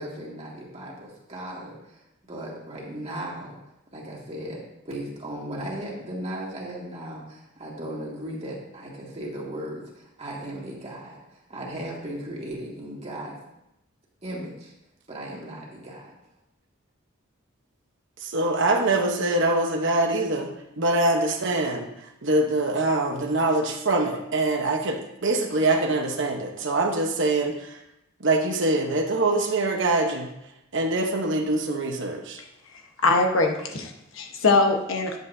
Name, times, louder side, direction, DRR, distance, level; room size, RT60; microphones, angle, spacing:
voice 1, 0.0-2.0 2.3-3.6 3.9-13.4 14.2-14.7 15.1-16.1, right 1 dB, 30° right, -4 dB, 2.0 m, -36 dB
voice 2, 18.2-20.5 20.8-21.9 22.2-27.8 28.2-30.3 30.7-32.4, right 2 dB, 60° right, 3 dB, 1.0 m, -24 dB
voice 3, 33.0-35.2, left 3 dB, 75° left, 3 dB, 1.1 m, -22 dB
10.0 x 7.9 x 2.7 m, 0.86 s
head